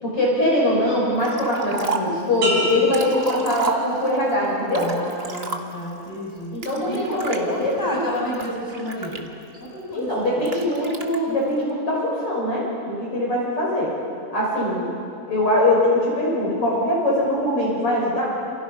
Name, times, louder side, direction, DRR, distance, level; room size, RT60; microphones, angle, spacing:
voice 1, 0.0-4.9 6.5-8.1 9.9-13.9 14.3-14.9 15.3-18.3, left 1 dB, 50° left, -4 dB, 6.8 m, -22 dB
Liquid, 1.2-2.2 2.7-4.2 4.7-5.9 6.6-7.4 8.0-9.7 10.4-11.2, right 3 dB, 30° right, 1.1 m, -31 dB
sound 1, 2.4-4.2 4.7-5.1, equal, 70° right, 6.7 m, -30 dB
voice 2, 4.8-6.6 6.9-9.3 9.6-10.3, equal, 5° left, -4 dB, 6.7 m, -31 dB
29.0 x 28.0 x 5.5 m, 2.7 s
omnidirectional pair, 3.3 m